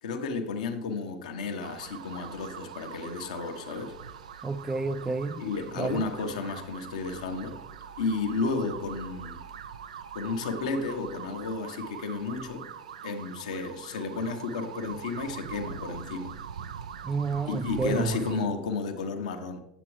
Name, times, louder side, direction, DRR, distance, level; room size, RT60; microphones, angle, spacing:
voice 1, 0.0-3.9 5.4-7.6 8.0-9.4 10.1-12.7 13.0-16.3 17.4-19.6, left 4 dB, 75° left, 0.9 m, -32 dB
sound 1, 1.6-18.4, right 7 dB, 75° right, 0.4 m, -43 dB
voice 2, 4.4-5.5 5.8-6.1 17.0-18.2, right 3 dB, 15° right, 0.4 m, -30 dB
8.9 x 7.6 x 3.2 m
figure-of-eight pair, 75°, 4 cm